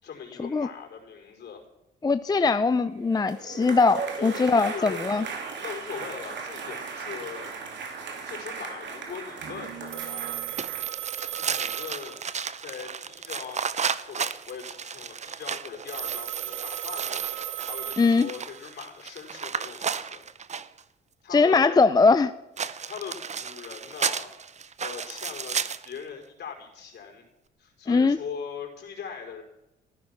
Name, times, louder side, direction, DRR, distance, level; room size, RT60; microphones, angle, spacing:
voice 1, 0.0-1.6 4.2-5.0 5.6-7.5 8.3-10.4 11.3-12.2 12.6-13.7 14.1-20.2 21.2-21.8 22.8-24.3 24.8-25.6 25.8-27.2 27.6-29.4, left 6 dB, 60° left, 1 dB, 4.7 m, -40 dB
voice 2, 2.0-5.3 18.0-18.3 21.3-22.3 27.9-28.2, left 4 dB, 20° left, 12 dB, 0.5 m, -21 dB
sound 1, 3.0-10.9, right 5 dB, 65° right, 3.0 m, -37 dB
Telephone, 9.9-12.7 15.9-18.7, right 12 dB, 80° right, 1.1 m, -35 dB
sound 2, 10.6-20.8 22.6-26.0, right 6 dB, 35° right, 0.8 m, -33 dB
14.5 x 14.0 x 5.9 m, 0.90 s
cardioid pair, 90°, 20 cm